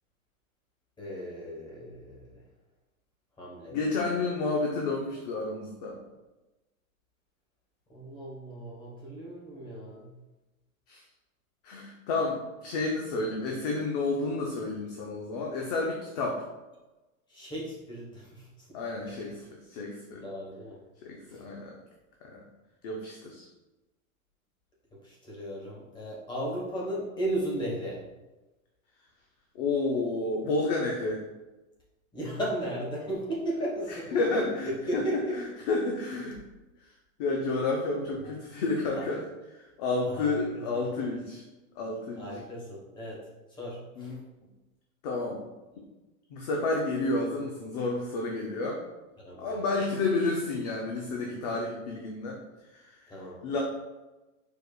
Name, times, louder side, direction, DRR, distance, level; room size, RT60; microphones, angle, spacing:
voice 1, 1.0-2.4 3.4-4.3 7.9-10.1 17.3-18.5 19.1-19.3 20.2-20.7 21.3-21.4 25.0-28.0 32.1-35.4 38.2-38.3 38.9-39.0 40.1-40.7 42.2-43.2 43.6-44.2 49.2-49.6 53.1-53.4, right 1 dB, 10° left, -4 dB, 1.0 m, -36 dB
voice 2, 3.7-6.0 10.9-11.0 11.6-16.4 18.7-20.2 21.0-21.7 22.2-22.4 22.8-23.5 29.6-31.2 33.9-35.0 35.3-36.4 37.2-39.2 39.8-41.4 41.8-42.2 44.0-44.2 45.0-45.4 46.3-48.8 49.4-52.4 52.7-53.0 53.4-53.6, left 3 dB, 30° left, 0 dB, 0.4 m, -30 dB
4.8 x 4.7 x 2.2 m, 1.1 s
supercardioid pair, 150°, 42 cm